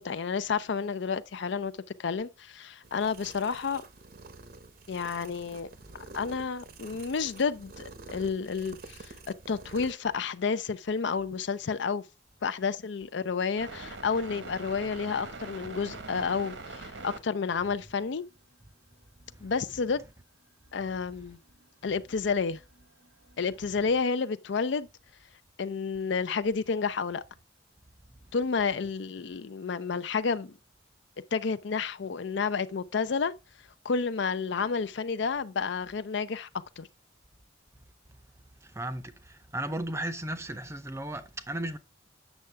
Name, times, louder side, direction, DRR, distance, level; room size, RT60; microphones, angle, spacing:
voice 1, 0.0-1.7 2.0-3.8 4.9-5.7 6.1-9.1 9.5-12.0 12.4-18.2 19.4-20.0 20.7-21.4 21.8-22.6 23.4-24.9 25.6-27.2 28.3-30.5 31.3-33.3 33.8-36.5 36.8-36.9, left 5 dB, 70° left, 0.5 m, -30 dB
sound 1, 2.8-9.9, right 3 dB, 50° right, 0.8 m, -48 dB
sound 2, 13.6-17.2 18.3-18.4 19.2-19.9 20.7-23.6, right 3 dB, 80° right, 1.3 m, -44 dB
voice 2, 38.6-41.8, right 1 dB, 15° right, 0.6 m, -35 dB
8.2 x 6.5 x 3.4 m
head